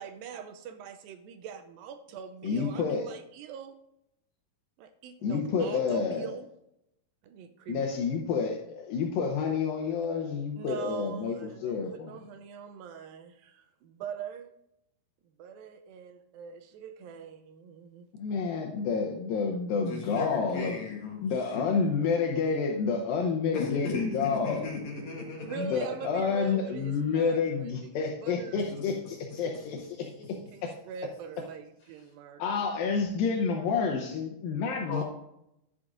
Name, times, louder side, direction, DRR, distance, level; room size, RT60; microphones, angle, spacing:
voice 1, 0.0-3.8 4.8-6.5 7.2-7.9 10.6-14.5 15.4-18.1 25.4-28.7 30.5-32.4, right 6 dB, 80° right, 8 dB, 2.2 m, -43 dB
voice 2, 2.4-3.1 5.2-6.3 7.7-12.1 18.1-20.8 21.2-24.7 25.6-29.0 29.4-30.4 30.6-30.7 32.4-35.0, left 5 dB, 75° left, 1 dB, 2.4 m, -29 dB
voice 3, 19.9-21.8 23.5-25.9 28.5-29.9 34.9-35.0, left 4 dB, 60° left, -1 dB, 2.2 m, -37 dB
11.0 x 8.7 x 2.5 m, 0.82 s
omnidirectional pair, 4.5 m